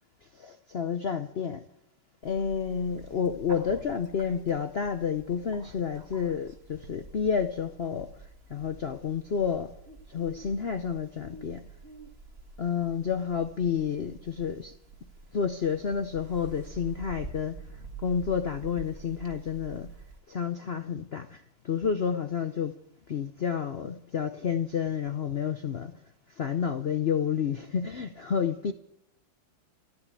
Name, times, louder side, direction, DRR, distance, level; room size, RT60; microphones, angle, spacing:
voice 1, 0.3-1.6 2.2-9.7 10.1-11.7 12.6-14.7 15.3-17.6 18.0-19.9 20.3-22.8 23.1-25.9 26.4-28.7, left 7 dB, 85° left, 0.5 m, -30 dB
Bird, 2.2-20.2, right 3 dB, 30° right, 2.0 m, -48 dB
14.5 x 11.0 x 8.3 m
omnidirectional pair, 2.2 m